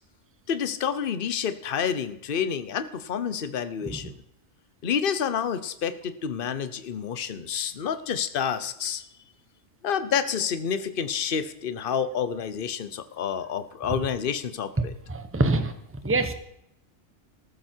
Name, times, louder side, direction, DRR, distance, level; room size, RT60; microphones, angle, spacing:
voice 1, 0.5-4.1 4.8-9.0 9.8-14.9, left 7 dB, 45° left, 12 dB, 1.0 m, -29 dB
voice 2, 15.1-15.7 16.0-16.3, right 2 dB, 10° right, 8 dB, 1.1 m, -25 dB
14.0 x 13.5 x 4.5 m, 0.77 s
omnidirectional pair, 1.4 m